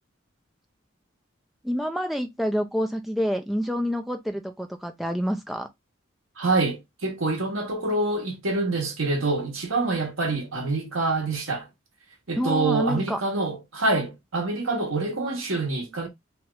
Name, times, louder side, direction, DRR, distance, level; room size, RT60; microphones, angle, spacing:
voice 1, 1.6-5.7 12.4-13.2, equal, ahead, 0.4 m, -27 dB
voice 2, 6.4-11.7 12.3-16.1, right 3 dB, 80° right, 1.1 m, -26 dB
2.9 x 2.4 x 3.0 m
head